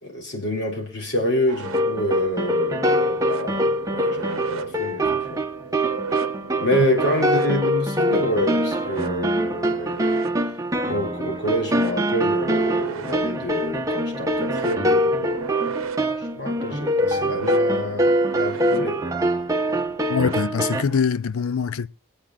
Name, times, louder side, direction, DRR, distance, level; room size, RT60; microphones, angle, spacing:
voice 1, 0.0-5.4 6.6-10.5 10.9-15.4 16.2-19.2, equal, 50° left, 3.4 m, -27 dB
sound 1, 1.5-21.0, right 5 dB, 75° right, 0.8 m, -37 dB
sound 2, 1.6-20.8, equal, 15° right, 0.9 m, -24 dB
voice 2, 20.1-21.9, left 6 dB, 75° left, 0.5 m, -23 dB
24.0 x 8.8 x 2.4 m
head